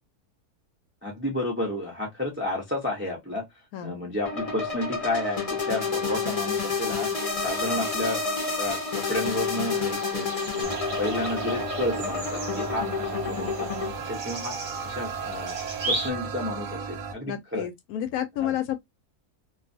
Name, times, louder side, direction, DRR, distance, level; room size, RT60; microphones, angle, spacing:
voice 1, 1.0-3.4 3.8-7.1 7.4-8.2 8.6-10.7 11.0-14.6 14.8-15.6 15.9-17.7 18.4-18.6, left 1 dB, 15° right, 0.4 m, -31 dB
sound 1, 4.2-13.9, left 4 dB, 40° left, 0.5 m, -29 dB
sound 2, 9.2-16.1, right 2 dB, 40° right, 0.8 m, -37 dB
sound 3, 10.6-17.1, right 5 dB, 70° right, 0.9 m, -35 dB
voice 2, 17.3-18.9, left 11 dB, 75° left, 1.0 m, -30 dB
2.4 x 2.4 x 2.6 m
omnidirectional pair, 1.7 m